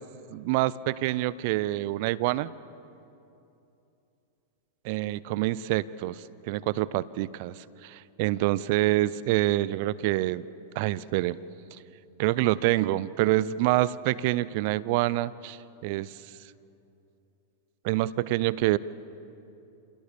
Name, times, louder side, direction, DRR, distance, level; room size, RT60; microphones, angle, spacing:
voice 1, 0.3-2.5 4.8-6.2 6.5-10.4 10.8-11.4 12.2-15.6 15.8-16.1 17.8-18.8, right 16 dB, 55° right, 19 dB, 0.6 m, -26 dB
26.5 x 17.5 x 7.0 m, 2.8 s
hypercardioid pair, 100°, 0 cm